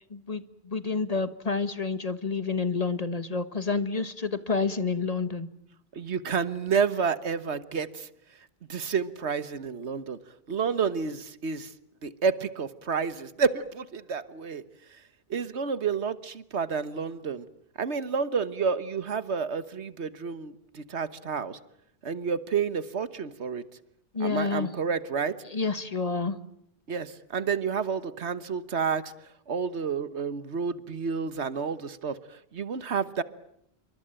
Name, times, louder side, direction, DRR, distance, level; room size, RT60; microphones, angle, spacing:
voice 1, 0.1-5.5 24.1-24.7 25.5-26.4, left 4 dB, 35° left, 13 dB, 1.4 m, -29 dB
voice 2, 5.9-8.1 8.7-10.2 10.5-11.7 12.0-14.6 14.9-15.0 15.3-17.5 17.8-21.6 22.0-23.6 24.2-25.4 26.9-29.1 29.5-33.2, right 6 dB, 75° right, 15 dB, 1.6 m, -30 dB
27.5 x 24.0 x 8.9 m, 0.74 s
omnidirectional pair, 1.1 m